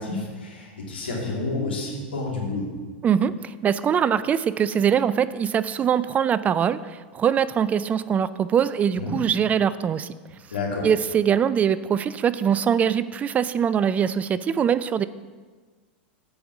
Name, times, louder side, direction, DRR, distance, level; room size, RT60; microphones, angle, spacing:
voice 1, 0.0-2.7 9.0-9.1 10.5-10.9, left 3 dB, 85° left, -3 dB, 2.6 m, -29 dB
voice 2, 3.0-10.1 10.8-15.0, right 8 dB, 25° right, 15 dB, 0.3 m, -22 dB
7.7 x 5.3 x 7.2 m, 1.4 s
hypercardioid pair, 95°, 6 cm